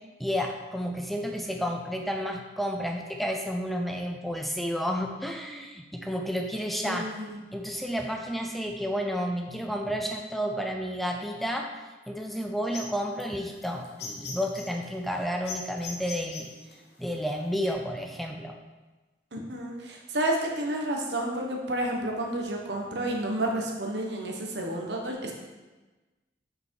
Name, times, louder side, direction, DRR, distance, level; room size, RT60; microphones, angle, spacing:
voice 1, 0.2-7.1 7.5-11.8 12.1-16.5 17.0-18.6, equal, ahead, 3 dB, 0.4 m, -31 dB
voice 2, 6.8-7.4 19.3-25.3, right 1 dB, 80° right, 0 dB, 1.2 m, -30 dB
sound 1, 12.7-17.7, left 3 dB, 70° left, 1.1 m, -41 dB
6.1 x 5.1 x 4.7 m, 1.2 s
head